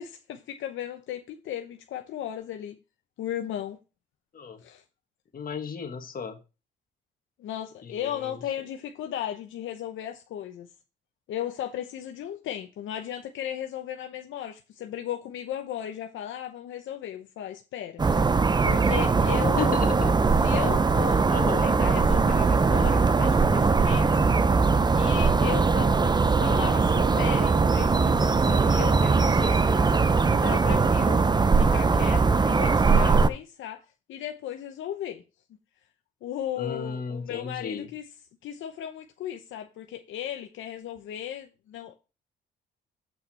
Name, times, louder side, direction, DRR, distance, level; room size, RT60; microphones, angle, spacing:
voice 1, 0.0-2.8 3.2-3.8 4.6-4.8 7.4-10.7 11.3-18.0 18.6-19.8 20.4-21.3 21.6-24.2 24.9-26.1 26.4-29.9 30.3-31.2 31.5-33.8 34.1-35.2 36.2-38.0 38.4-41.9, left 11 dB, 75° left, 0.8 m, -36 dB
voice 2, 5.3-6.4 7.8-8.4 19.6-20.2 21.3-21.7 36.6-37.9, left 6 dB, 45° left, 1.6 m, -34 dB
sound 1, 18.0-33.3, right 4 dB, 20° right, 0.6 m, -21 dB
8.0 x 5.6 x 4.2 m
cardioid pair, 90°, 20 cm